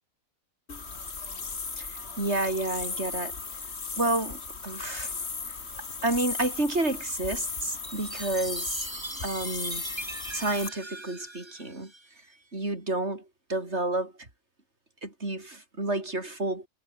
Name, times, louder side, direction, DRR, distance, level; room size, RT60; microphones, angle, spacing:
sound 1, 0.7-10.7, left 4 dB, 45° left, 2.3 m, -36 dB
voice 1, 1.8-3.4 4.0-5.1 6.0-8.9 9.2-9.8 10.3-11.9 12.5-14.3 15.0-16.7, right 2 dB, 45° right, 5.6 m, -30 dB
Chime, 7.8-12.4, right 2 dB, 20° right, 1.8 m, -41 dB
omnidirectional pair, 1.6 m